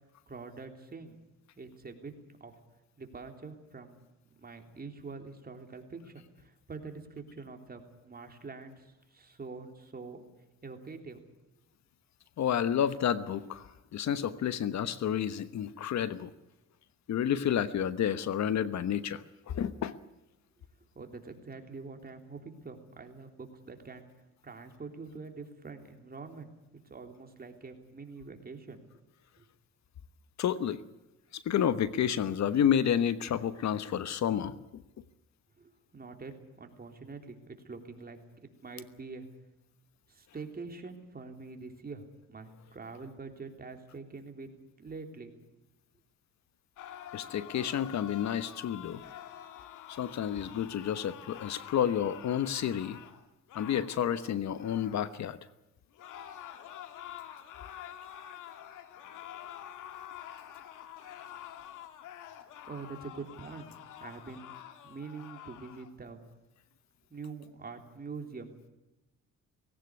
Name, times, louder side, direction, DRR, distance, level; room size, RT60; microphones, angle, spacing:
voice 1, 0.3-1.2 1.6-2.1 2.4-2.5 3.0-4.0 4.4-10.2 10.6-11.2 21.0-24.0 24.4-26.5 26.8-28.8 29.4-29.5 35.6-39.3 40.1-44.5 44.8-45.3 62.7-63.7 64.0-64.6 64.8-66.2 67.1-68.5, right 4 dB, 30° right, 5 dB, 3.5 m, -45 dB
voice 2, 12.4-16.3 17.1-20.0 30.4-30.8 31.3-34.8 47.1-49.0 50.0-53.0 53.5-55.4, left 9 dB, 65° left, 14 dB, 1.2 m, -30 dB
sound 1, 46.8-55.2 55.9-65.9, left 10 dB, 85° left, 2.0 m, -47 dB
19.0 x 17.0 x 9.7 m, 1.0 s
cardioid pair, 90°, 30 cm